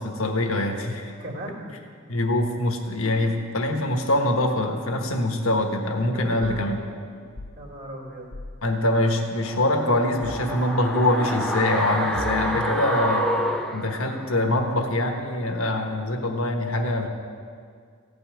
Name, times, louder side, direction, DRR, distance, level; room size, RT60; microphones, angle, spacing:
voice 1, 0.0-1.1 2.1-6.8 8.6-13.3 13.7-17.1, left 1 dB, 80° left, 4 dB, 1.3 m, -24 dB
voice 2, 1.2-1.7 6.0-6.8 7.6-8.3 11.9-12.8 13.6-14.3, right 1 dB, 50° right, -2 dB, 2.7 m, -37 dB
sound 1, 7.4-7.6 8.3-8.6 10.2-10.5 12.1-12.7, left 1 dB, 50° left, 0.8 m, -37 dB
sound 2, 9.4-14.6 14.9-15.0, equal, ahead, 0.7 m, -28 dB
15.5 x 5.6 x 9.2 m, 2.1 s
head